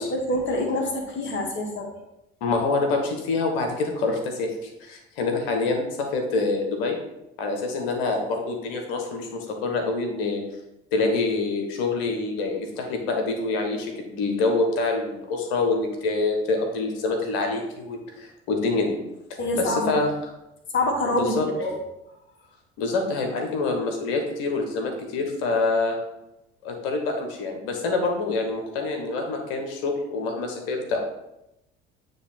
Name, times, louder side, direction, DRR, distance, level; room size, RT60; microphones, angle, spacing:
voice 1, 0.0-1.9 19.4-20.0 20.7-21.8, left 1 dB, 40° left, 0 dB, 1.8 m, -26 dB
voice 2, 2.4-7.0 7.4-10.4 10.9-19.0 19.5-20.1 21.2-21.5 22.8-26.0 26.6-31.0, left 3 dB, 65° left, 3 dB, 1.4 m, -26 dB
9.2 x 3.3 x 4.3 m, 0.88 s
figure-of-eight pair, 55°, 31 cm